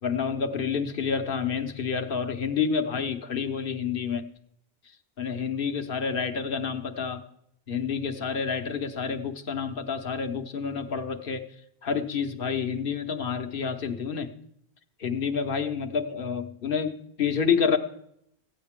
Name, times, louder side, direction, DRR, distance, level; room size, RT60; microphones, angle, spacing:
voice 1, 0.0-4.3 5.2-7.2 7.7-11.5 11.8-14.3 15.0-17.8, left 6 dB, 55° left, 6 dB, 1.1 m, -28 dB
15.0 x 9.5 x 3.7 m, 0.72 s
omnidirectional pair, 1.1 m